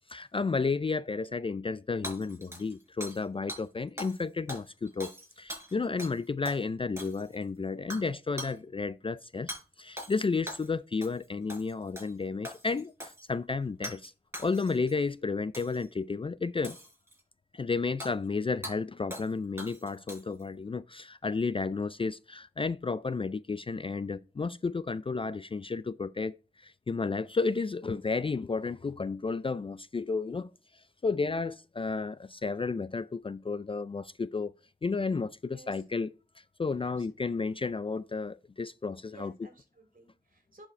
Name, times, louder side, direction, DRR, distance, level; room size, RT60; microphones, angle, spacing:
voice 1, 0.1-9.5 9.8-14.1 14.4-16.8 17.5-30.5 31.0-34.5 34.8-36.1 36.6-39.3, left 4 dB, 30° left, 0.4 m, -32 dB
Hammer / Shatter, 2.0-3.2 3.5-3.6 4.0-4.2 4.5-6.2 6.5-6.6 7.0-7.4 7.9-8.1 8.4-8.6 9.5-9.6 10.0-10.7 11.0-11.2 11.5-12.1 12.4-13.2 13.8-14.1 14.3-14.9 15.5-15.9 16.6-17.2 18.0-18.1 18.6-18.8 19.1-19.3 19.6-20.4, equal, 15° right, 5.0 m, -42 dB
voice 2, 36.8-37.4 39.1-40.7, right 2 dB, 50° right, 3.3 m, -55 dB
11.0 x 5.0 x 3.2 m
cardioid pair, 70°, 18 cm